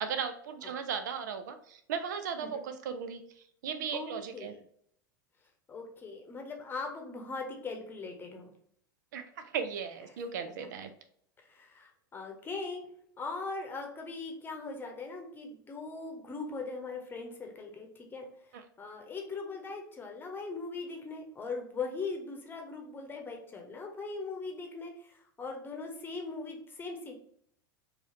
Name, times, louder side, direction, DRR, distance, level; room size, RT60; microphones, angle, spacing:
voice 1, 0.0-3.2 3.6-4.5 9.1-10.9 18.5-18.6, right 7 dB, 60° right, 8 dB, 0.5 m, -36 dB
voice 2, 3.9-4.6 5.7-8.5 11.4-12.8 13.2-27.1, left 4 dB, 20° left, 3 dB, 1.0 m, -40 dB
4.7 x 2.8 x 2.7 m, 0.66 s
figure-of-eight pair, 85°, 11 cm